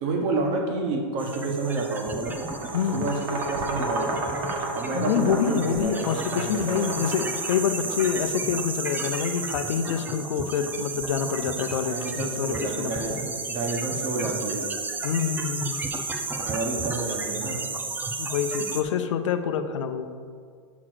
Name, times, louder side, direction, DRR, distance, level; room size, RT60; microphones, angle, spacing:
voice 1, 0.0-2.4 2.9-4.2 4.7-6.9 11.9-14.7 16.4-17.6, right 3 dB, 40° right, 2 dB, 1.4 m, -29 dB
sound 1, 1.2-18.8, right 3 dB, 10° right, 0.5 m, -33 dB
sound 2, 2.3-8.0, right 2 dB, 55° right, 1.8 m, -32 dB
voice 2, 2.7-3.1 4.9-13.3 15.0-15.8 18.2-20.1, left 7 dB, 80° left, 8 dB, 0.7 m, -27 dB
6.2 x 5.9 x 6.3 m, 2.1 s
supercardioid pair, 145°, 16 cm